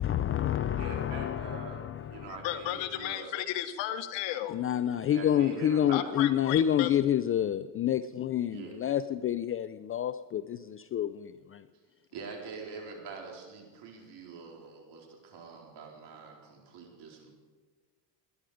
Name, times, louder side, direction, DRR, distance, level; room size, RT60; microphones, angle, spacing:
voice 1, 0.0-2.3 4.5-11.6, left 10 dB, 30° left, 12 dB, 0.4 m, -29 dB
voice 2, 0.8-3.3 5.0-6.1 8.5-8.8 12.1-17.3, right 5 dB, 60° right, 0 dB, 4.4 m, -44 dB
voice 3, 2.4-4.6 5.9-6.9, left 12 dB, 70° left, 9 dB, 1.4 m, -34 dB
19.5 x 11.0 x 5.0 m, 1.5 s
cardioid pair, 120°, 46 cm